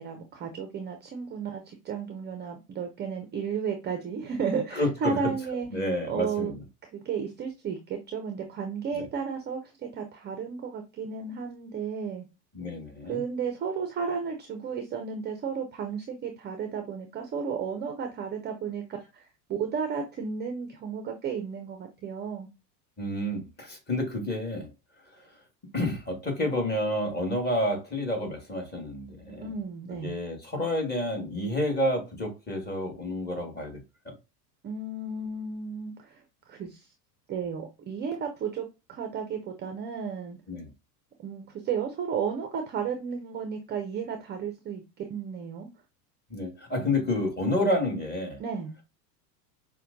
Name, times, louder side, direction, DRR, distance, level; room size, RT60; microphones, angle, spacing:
voice 1, 0.0-5.7 6.0-6.5 6.9-12.2 13.1-19.3 19.6-22.5 29.3-30.1 34.6-36.2 36.5-36.9 37.3-40.4 41.2-44.8 45.1-45.7 48.4-48.8, right 6 dB, 20° right, 0.5 m, -33 dB
voice 2, 4.7-5.3 5.7-6.6 8.9-9.0 12.5-13.2 23.0-24.7 25.7-29.5 30.0-33.8 34.0-34.1 40.5-40.7 46.3-48.4, left 1 dB, 20° left, 1.7 m, -29 dB
5.4 x 2.2 x 2.6 m
hypercardioid pair, 100°, 49 cm